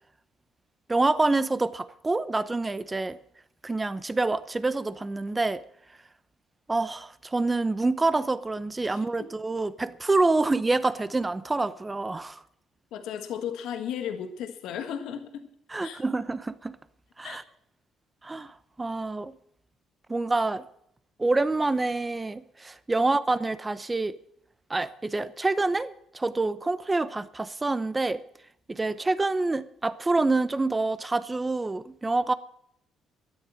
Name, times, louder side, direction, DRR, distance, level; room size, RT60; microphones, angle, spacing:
voice 1, 0.9-3.2 3.6-5.6 6.7-12.4 15.7-16.8 17.2-17.4 18.2-19.3 20.1-20.6 21.2-24.1 24.7-28.2 28.7-32.3, right 3 dB, 15° right, 0.8 m, -27 dB
voice 2, 8.9-9.3 12.9-15.4 15.8-16.0 17.2-17.4 23.0-23.1, left 8 dB, 80° left, 1.6 m, -35 dB
13.0 x 10.5 x 7.6 m
cardioid pair, 120°, 0 cm